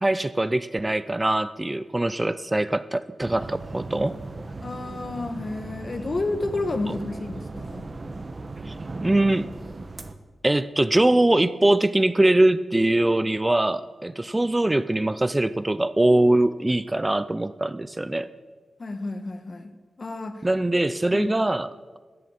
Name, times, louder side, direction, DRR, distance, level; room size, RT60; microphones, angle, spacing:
voice 1, 0.0-4.2 8.7-8.8 9.0-9.5 10.4-18.3 20.4-21.7, right 1 dB, 20° right, 15 dB, 0.5 m, -22 dB
sound 1, 3.2-10.1, right 3 dB, 40° right, 1.1 m, -37 dB
voice 2, 4.6-7.9 18.8-20.4 20.7-20.8 21.1-21.4, left 2 dB, 45° left, 8 dB, 1.4 m, -31 dB
13.5 x 7.5 x 8.7 m, 1.4 s
cardioid pair, 60°, 0 cm